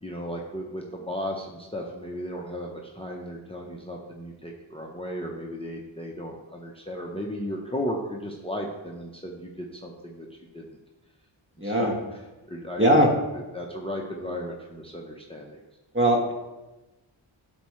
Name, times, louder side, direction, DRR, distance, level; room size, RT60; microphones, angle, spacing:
voice 1, 0.0-10.7 11.6-12.2 12.5-13.0 13.3-15.6, equal, 10° left, 0 dB, 0.8 m, -35 dB
voice 2, 11.6-11.9 12.8-13.1 15.9-16.3, equal, 25° right, 1 dB, 1.3 m, -20 dB
11.0 x 4.3 x 3.2 m, 1.1 s
wide cardioid pair, 65°, 48 cm